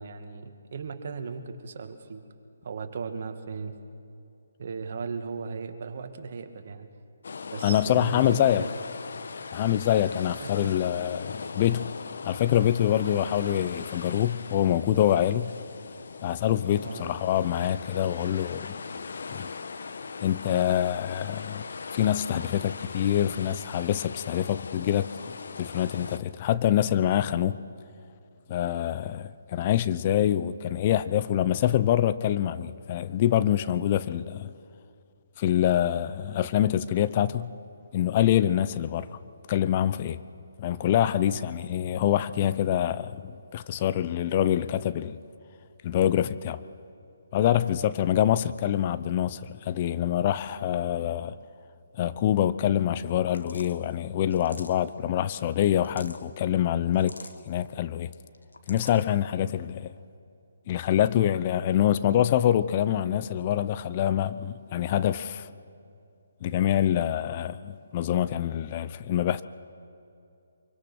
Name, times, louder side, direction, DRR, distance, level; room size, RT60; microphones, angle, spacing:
voice 1, 0.0-2.2 2.6-3.7 4.6-6.9 7.5-8.8 10.4-10.7 16.8-17.0 41.2-41.5, right 5 dB, 55° right, 2.0 m, -37 dB
sound 1, 7.2-26.2, left 4 dB, 65° left, 1.1 m, -40 dB
voice 2, 7.6-8.6 9.5-11.9 12.2-15.6 16.2-18.8 19.3-19.5 20.2-21.6 21.9-25.1 25.6-27.6 28.5-34.5 35.4-37.5 37.9-39.1 39.5-40.2 40.6-43.2 43.5-45.2 45.8-46.6 47.3-51.4 52.0-57.1 57.5-58.1 58.7-59.9 60.7-65.5 66.4-69.4, left 11 dB, 35° left, 0.6 m, -25 dB
sound 2, 53.3-53.8 54.3-54.9 55.7-56.2 56.9-57.4 58.3-59.0, left 3 dB, 85° left, 1.9 m, -45 dB
24.5 x 24.0 x 6.3 m
figure-of-eight pair, 145°, 0 cm